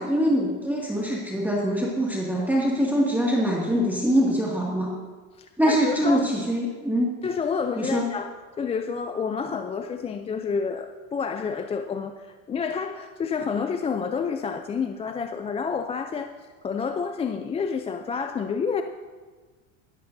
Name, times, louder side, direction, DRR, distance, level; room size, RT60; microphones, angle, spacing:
voice 1, 0.0-4.9 5.6-7.1 7.8-8.1, equal, 5° right, -4 dB, 2.1 m, -23 dB
voice 2, 5.4-6.3 7.2-8.3 8.6-16.3 16.6-18.8, left 6 dB, 15° left, 7 dB, 0.4 m, -29 dB
17.0 x 13.5 x 2.7 m, 1.4 s
supercardioid pair, 110°, 40 cm